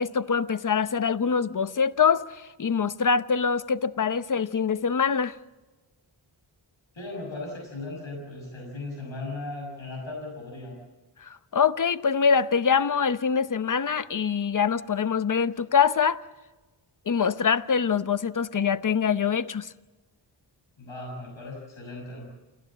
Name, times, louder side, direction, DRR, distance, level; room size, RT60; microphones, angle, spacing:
voice 1, 0.0-5.4 11.2-16.2 17.1-19.7, left 6 dB, 40° left, 0.8 m, -24 dB
voice 2, 6.9-10.8 20.8-22.3, left 2 dB, 75° left, 6.5 m, -37 dB
29.0 x 16.0 x 7.5 m
wide cardioid pair, 90°, 47 cm